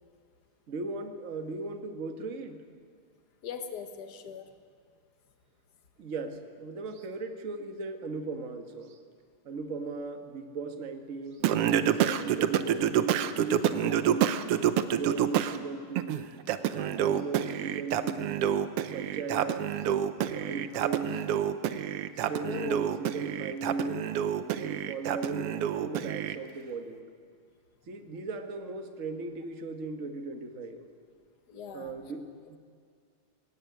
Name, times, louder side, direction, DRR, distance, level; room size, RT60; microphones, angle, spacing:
voice 1, 0.7-2.6 6.0-9.0 9.4-14.4 15.0-16.2 16.7-18.4 18.9-19.9 20.2-21.2 22.3-24.1 24.5-27.1 27.9-30.9 31.7-32.6, right 3 dB, 45° right, 6 dB, 1.0 m, -37 dB
voice 2, 3.4-4.5 22.4-22.8 31.5-31.9, left 7 dB, 45° left, 7 dB, 1.4 m, -39 dB
Singing, 11.4-15.6 16.0-26.4, right 10 dB, 75° right, 1.4 m, -28 dB
20.5 x 17.0 x 9.2 m, 2.1 s
omnidirectional pair, 3.5 m